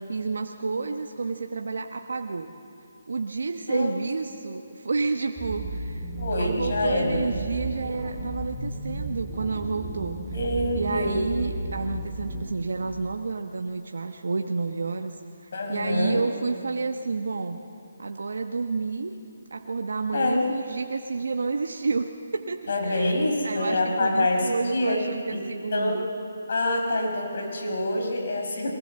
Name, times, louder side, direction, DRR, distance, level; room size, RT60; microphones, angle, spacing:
voice 1, 0.1-2.5 3.1-6.1 6.4-10.2 10.7-15.2 15.4-17.6 18.0-19.2 19.5-23.1 23.4-26.1, right 4 dB, 70° right, 5 dB, 1.0 m, -30 dB
sound 1, 5.4-12.4, right 2 dB, ahead, 4.6 m, -34 dB
voice 2, 6.2-7.3 10.3-11.3 15.5-16.2 20.1-20.5 22.7-25.0 25.3-25.4 25.7-26.0 26.5-28.7, left 1 dB, 60° left, 2 dB, 5.3 m, -26 dB
22.5 x 18.5 x 7.7 m, 2.6 s
figure-of-eight pair, 150°, 0 cm